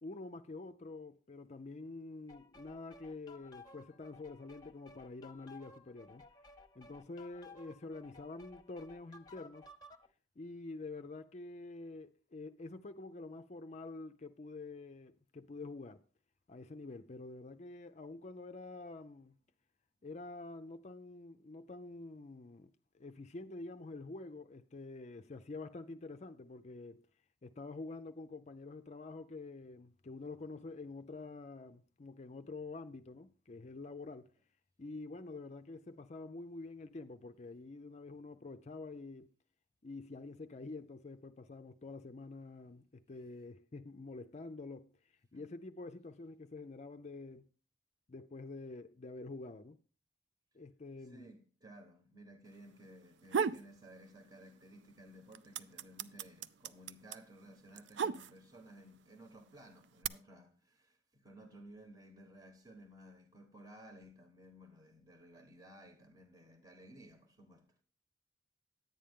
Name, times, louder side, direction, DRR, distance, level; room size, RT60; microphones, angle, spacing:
voice 1, 0.0-6.2 6.8-9.7 10.4-16.0 16.5-19.4 20.0-27.0 27.4-34.3 34.8-39.3 39.8-44.9 45.3-47.5 48.1-49.8 50.5-51.3, left 3 dB, 40° left, 0.5 m, -47 dB
sound 1, 2.3-10.1, left 2 dB, 20° left, 0.9 m, -57 dB
voice 2, 51.0-67.8, right 1 dB, 20° right, 1.1 m, -57 dB
sound 2, 53.0-53.7 54.1-54.8 55.1-58.7 59.4-60.1, right 6 dB, 80° right, 0.4 m, -36 dB
10.5 x 8.8 x 3.6 m
head